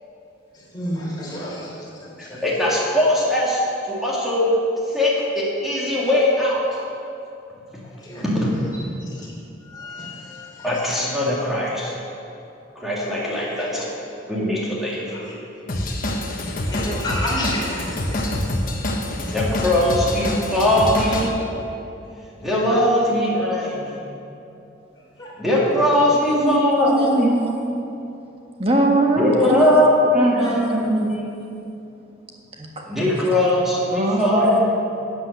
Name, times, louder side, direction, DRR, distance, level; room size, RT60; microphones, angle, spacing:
voice 1, 0.7-1.7 8.1-8.2 9.7-10.5 16.7-17.8 25.2-25.3, left 1 dB, 20° left, -6 dB, 3.4 m, -29 dB
voice 2, 2.2-3.6 3.9-4.5 4.8-6.7 8.1-8.5 10.6-11.9 12.8-13.9 14.3-15.0 19.3-21.3 22.4-24.1 25.4-27.4 29.2-31.5 32.8-34.6, left 1 dB, ahead, -6 dB, 2.2 m, -20 dB
Drum kit / Drum, 15.7-21.3, left 1 dB, 45° left, 1.2 m, -26 dB
voice 3, 26.2-27.8 28.6-29.8 30.1-31.3 32.6-33.1 33.9-34.6, right 1 dB, 30° right, 1 dB, 1.4 m, -22 dB
12.5 x 7.8 x 6.7 m, 2.7 s
head